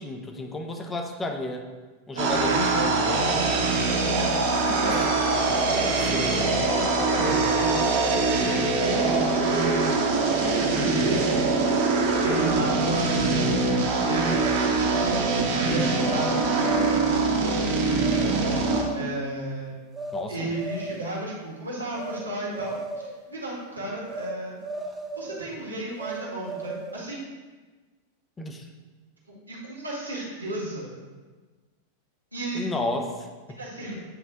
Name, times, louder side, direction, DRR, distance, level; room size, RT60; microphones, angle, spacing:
voice 1, 0.0-1.6 2.1-3.2 4.9-5.0 5.8-7.5 20.1-20.5 28.4-28.7 32.5-33.6, left 2 dB, 15° left, 4 dB, 0.8 m, -33 dB
voice 2, 2.1-5.6 6.7-8.1 8.4-10.1 10.7-17.7 18.9-19.7 20.3-24.6 25.2-27.2 29.3-30.9 32.3-32.6 33.6-34.0, right 2 dB, 80° right, -4 dB, 1.8 m, -33 dB
sound 1, 2.2-18.8, right 3 dB, 50° right, 1.2 m, -23 dB
sound 2, 14.3-15.4 16.0-16.3 16.6-17.2 18.0-18.3 18.6-19.1 19.9-20.3 20.5-21.2 21.9-22.3 22.5-23.2 24.1-24.4 24.6-25.4 26.0-27.0, right 3 dB, 15° right, 0.5 m, -35 dB
8.8 x 3.3 x 3.7 m, 1.3 s
figure-of-eight pair, 90°, 0 cm